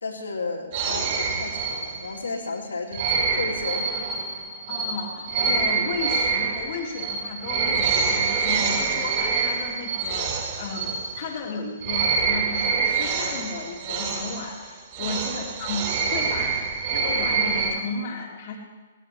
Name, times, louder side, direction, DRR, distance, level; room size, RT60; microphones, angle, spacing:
voice 1, 0.0-3.9 15.0-15.2, left 3 dB, 70° left, -2 dB, 2.7 m, -33 dB
sound 1, 0.7-2.3 2.9-11.5 11.8-17.7, right 5 dB, 40° right, 6.4 m, -26 dB
voice 2, 4.7-16.6 16.9-18.6, left 4 dB, 40° left, -1 dB, 2.3 m, -34 dB
19.5 x 17.5 x 3.2 m, 1.2 s
figure-of-eight pair, 120°, 0 cm